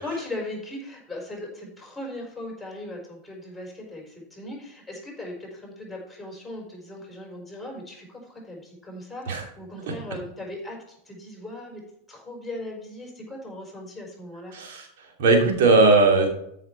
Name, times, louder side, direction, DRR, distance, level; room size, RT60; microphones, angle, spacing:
voice 1, 0.0-11.8 12.1-14.5, left 1 dB, 5° left, -1 dB, 4.5 m, -38 dB
voice 2, 14.5-16.3, right 3 dB, 55° right, 2 dB, 2.8 m, -19 dB
13.0 x 5.8 x 4.5 m, 0.75 s
figure-of-eight pair, 90°, 0 cm